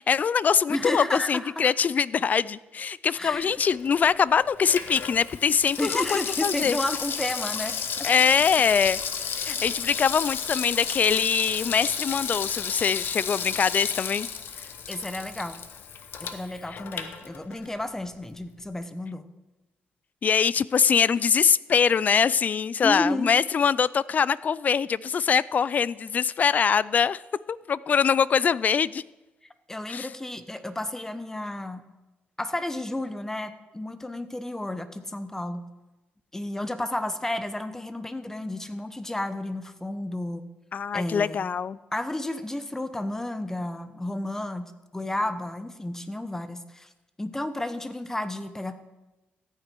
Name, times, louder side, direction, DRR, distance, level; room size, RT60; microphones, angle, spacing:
voice 1, 0.0-6.8 8.0-9.0 9.4-14.3 16.7-16.8 20.2-27.2 27.5-29.0 29.9-30.1 40.7-41.8, left 6 dB, 45° left, 0.3 m, -23 dB
voice 2, 0.7-1.7 3.1-3.5 5.8-8.1 14.9-15.6 16.2-19.2 22.8-23.3 29.7-31.8 32.4-35.7 36.3-40.4 40.9-41.5 41.9-46.9 47.2-48.8, left 1 dB, 10° left, 0.9 m, -32 dB
Water tap faucet / Sink (filling or washing), 3.5-17.8 18.1-18.2, left 7 dB, 65° left, 0.9 m, -33 dB
14.0 x 9.0 x 4.5 m
cardioid pair, 90°, 4 cm